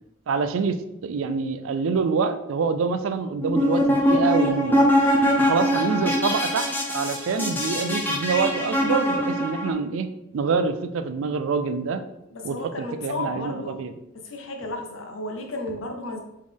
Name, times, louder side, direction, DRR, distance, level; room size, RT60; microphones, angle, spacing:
voice 1, 0.3-0.8 1.0-4.8 5.4-12.0 12.4-13.9, right 5 dB, 80° right, 10 dB, 0.4 m, -26 dB
sound 1, 3.4-9.7, equal, 10° left, 0.6 m, -22 dB
voice 2, 12.3-13.8 14.1-16.2, left 2 dB, 75° left, 3 dB, 0.7 m, -33 dB
4.1 x 3.1 x 3.5 m, 0.86 s
head